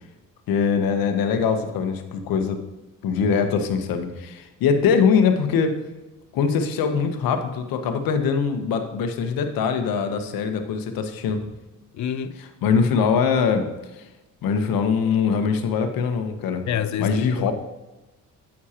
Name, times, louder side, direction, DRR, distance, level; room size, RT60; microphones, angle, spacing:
voice 1, 0.5-2.6 3.0-5.8 6.3-11.4 12.6-13.7 13.9-14.1 14.4-16.6 17.0-17.5, left 6 dB, 90° left, 1.0 m, -22 dB
voice 2, 11.9-12.4 16.7-17.5, left 9 dB, 55° left, 0.6 m, -27 dB
9.6 x 7.2 x 2.9 m
cardioid pair, 120°, 34 cm